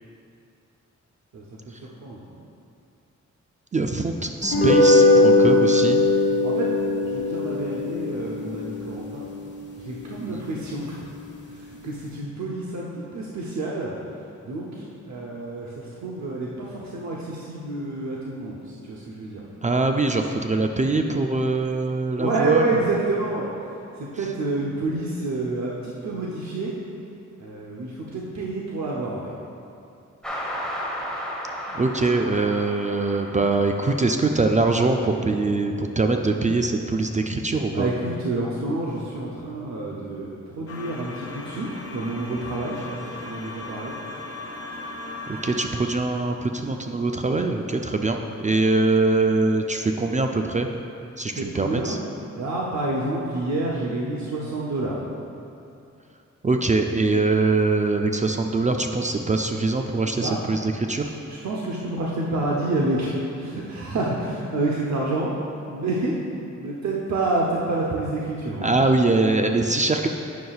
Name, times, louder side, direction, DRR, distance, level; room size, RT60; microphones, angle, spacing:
voice 1, 1.3-2.2 6.4-6.7 7.0-9.2 9.8-11.0 11.5-14.0 14.4-19.4 22.2-23.5 23.9-26.8 27.4-29.3 37.7-44.0 51.2-52.0 52.3-55.0 60.2-60.4 61.0-65.3 65.7-66.2 66.6-68.7, right 2 dB, 70° right, -3 dB, 0.8 m, -28 dB
voice 2, 3.7-6.0 10.3-10.5 19.6-22.7 31.7-37.9 45.4-50.7 51.2-52.0 56.4-61.1 68.6-70.1, right 3 dB, 25° right, 4 dB, 0.4 m, -23 dB
sound 1, 4.4-10.9, left 2 dB, 40° left, 1.5 m, -21 dB
sound 2, 30.2-35.0, equal, 5° left, 1.1 m, -34 dB
sound 3, 40.7-45.7, left 2 dB, 55° left, 0.8 m, -37 dB
9.4 x 6.3 x 2.4 m, 2.7 s
cardioid pair, 70°, 29 cm